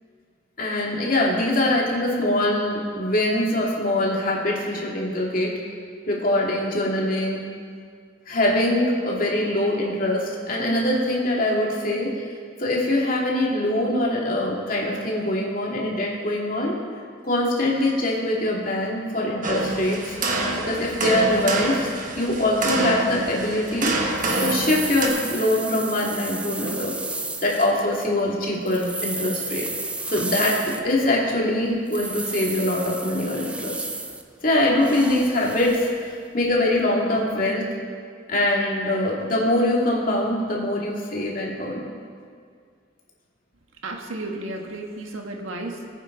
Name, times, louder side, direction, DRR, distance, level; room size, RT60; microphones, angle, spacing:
voice 1, 0.6-5.5 6.1-7.4 8.3-12.1 12.6-16.8 17.2-20.2 20.7-21.9 22.2-23.9 24.4-27.0 27.4-29.7 30.1-33.8 34.4-37.6 38.3-41.8, left 1 dB, 40° left, -3 dB, 2.5 m, -23 dB
sound 1, 19.4-25.1, right 2 dB, 40° right, 1.6 m, -27 dB
sound 2, 23.7-23.8 24.2-28.1 28.5-31.1 31.9-34.2 34.8-35.9 36.5-36.6, right 3 dB, 5° right, 0.4 m, -32 dB
voice 2, 43.8-45.9, right 2 dB, 80° right, 2 dB, 1.6 m, -33 dB
20.5 x 9.2 x 4.0 m, 2.1 s
head